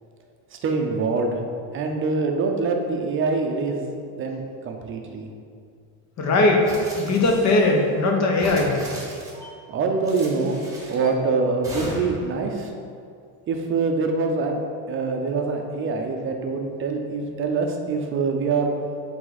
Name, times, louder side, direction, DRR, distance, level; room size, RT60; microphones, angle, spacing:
voice 1, 0.6-1.4 1.7-5.3 9.7-10.6 10.9-12.7 13.5-14.6 14.9-18.7, right 4 dB, 30° right, 3 dB, 0.7 m, -24 dB
voice 2, 6.2-6.7 7.0-8.8, left 2 dB, 40° left, 1 dB, 1.0 m, -19 dB
sound 1, 6.6-7.7 8.3-9.5 10.0-11.1 11.6-12.3, right 1 dB, 10° right, 1.2 m, -37 dB
7.6 x 3.5 x 4.1 m, 2.3 s
cardioid pair, 140°, 42 cm